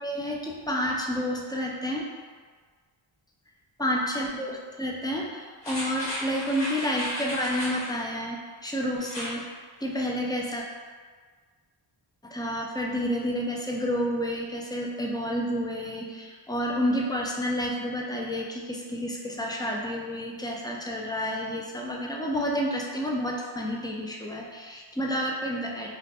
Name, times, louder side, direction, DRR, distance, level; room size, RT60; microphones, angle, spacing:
voice 1, 0.0-2.1 3.8-9.4 9.8-10.6 12.2-26.0, equal, 10° left, -2 dB, 0.3 m, -30 dB
sound 1, 5.6-8.0 9.0-9.4 9.8-9.9, equal, 60° left, 1.4 m, -34 dB
2.5 x 2.2 x 3.9 m, 1.6 s
wide cardioid pair, 90°, 49 cm